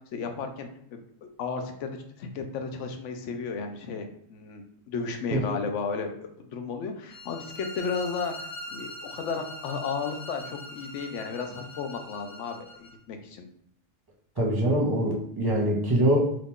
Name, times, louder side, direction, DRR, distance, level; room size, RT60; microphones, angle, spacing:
voice 1, 0.1-13.5, left 5 dB, 80° left, 5 dB, 0.9 m, -34 dB
sound 1, 7.1-12.9, left 1 dB, 50° left, 1.0 m, -42 dB
voice 2, 14.4-16.4, right 1 dB, 25° right, -2 dB, 0.7 m, -24 dB
2.9 x 2.5 x 3.5 m, 0.70 s
omnidirectional pair, 1.2 m